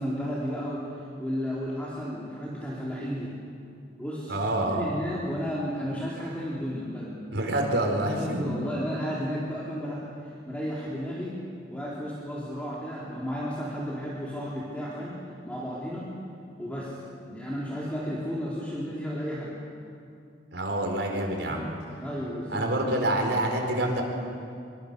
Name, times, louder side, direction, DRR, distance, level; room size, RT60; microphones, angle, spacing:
voice 1, 0.0-3.3 4.0-4.4 4.7-7.1 8.1-10.1 10.5-11.4 11.7-15.1 15.4-16.2 16.6-17.0 17.3-19.6 21.5-21.7 22.0-22.7 23.0-23.2, equal, 10° left, -7 dB, 3.6 m, -33 dB
voice 2, 4.3-4.9 7.3-8.4 20.5-21.7 22.5-24.0, right 1 dB, 85° right, 2 dB, 4.4 m, -27 dB
25.5 x 24.5 x 6.8 m, 2.5 s
head